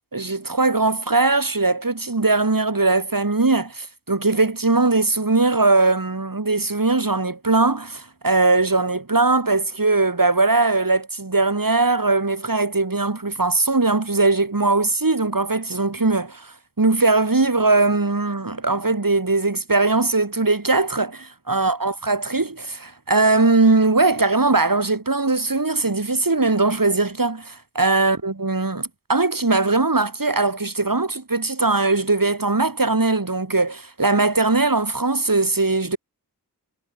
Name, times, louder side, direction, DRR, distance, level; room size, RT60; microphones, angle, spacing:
voice 1, 0.1-36.0, right 3 dB, 60° right, 6.8 m, -20 dB
wide cardioid pair, 45°, 38 cm